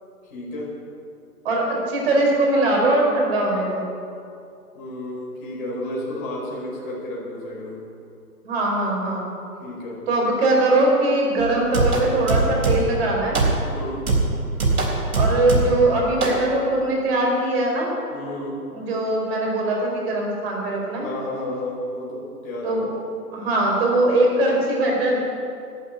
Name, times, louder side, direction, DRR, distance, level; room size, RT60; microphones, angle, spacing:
voice 1, 0.2-0.7 4.7-7.8 9.6-10.0 13.7-14.1 18.1-18.6 21.0-22.8, left 1 dB, 35° left, -4 dB, 4.6 m, -32 dB
voice 2, 1.4-3.8 8.4-9.3 10.1-13.4 15.1-17.9 18.7-21.1 22.6-22.9 23.3-25.2, right 2 dB, 40° right, -1 dB, 4.6 m, -21 dB
sound 1, 11.4-13.0 13.3-13.7 14.1-15.9 16.2-16.4, right 3 dB, 75° right, 4.1 m, -22 dB
12.0 x 10.5 x 8.8 m, 2.5 s
hypercardioid pair, 155°, 46 cm